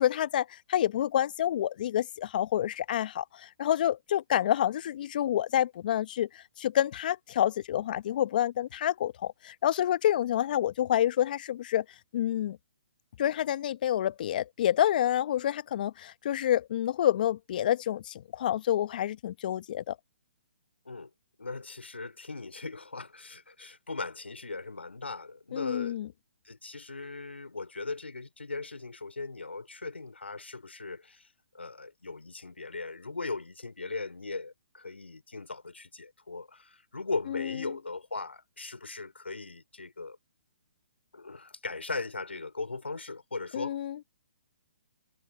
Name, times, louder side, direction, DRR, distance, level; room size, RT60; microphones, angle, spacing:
voice 1, 0.0-11.8 12.1-12.6 13.2-20.0 25.5-26.1 37.3-37.4 43.5-44.0, left 11 dB, 50° left, 1.1 m, -28 dB
voice 2, 21.4-26.0 26.4-31.3 31.5-40.2 41.1-43.8, left 3 dB, 90° left, 4.1 m, -38 dB
hypercardioid pair, 135°, 6 cm